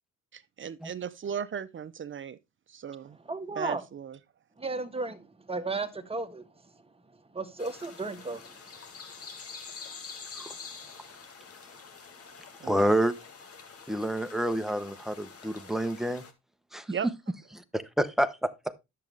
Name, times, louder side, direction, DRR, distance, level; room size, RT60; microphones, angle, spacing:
voice 1, 0.3-2.4 2.7-3.2 3.6-4.2 12.6-12.8 16.9-17.1, right 7 dB, 40° right, 0.7 m, -36 dB
voice 2, 3.2-3.8 4.6-6.4 7.3-8.6, right 3 dB, 20° right, 1.5 m, -34 dB
sound 1, 7.6-16.3, left 5 dB, 50° left, 2.0 m, -46 dB
voice 3, 12.6-13.2 13.9-16.2 16.7-16.9 17.5-18.7, right 1 dB, ahead, 0.9 m, -28 dB
10.5 x 7.5 x 3.4 m
cardioid pair, 90°, 30 cm